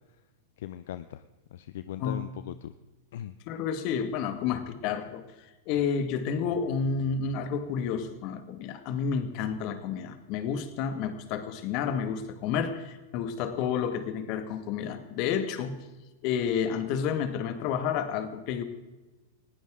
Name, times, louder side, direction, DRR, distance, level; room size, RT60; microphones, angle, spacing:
voice 1, 0.6-1.2 1.5-2.7 3.1-3.4, left 11 dB, 70° left, 12 dB, 0.6 m, -39 dB
voice 2, 3.5-5.2 5.7-15.7 16.2-18.6, left 7 dB, 50° left, 9 dB, 2.0 m, -30 dB
20.0 x 16.0 x 3.8 m, 1.1 s
hypercardioid pair, 120°, 0 cm